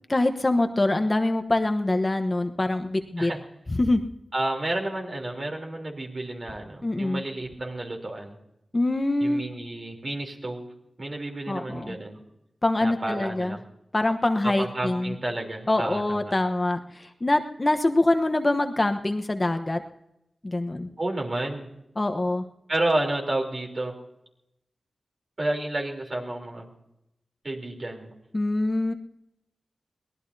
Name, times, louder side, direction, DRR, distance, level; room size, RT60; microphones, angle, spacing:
voice 1, 0.1-3.3 3.7-4.0 6.8-7.2 8.7-9.5 11.5-12.0 12.6-13.6 13.9-15.1 15.7-19.8 20.4-20.9 22.0-22.4 28.3-28.9, left 2 dB, 30° left, 7 dB, 1.0 m, -24 dB
voice 2, 4.3-8.4 9.2-10.7 11.0-12.2 12.8-13.6 14.4-16.3 21.0-21.7 22.7-24.0 25.4-26.7 27.4-28.1, right 1 dB, 50° right, 1 dB, 3.5 m, -30 dB
23.0 x 18.0 x 2.8 m, 0.85 s
cardioid pair, 65°, 0 cm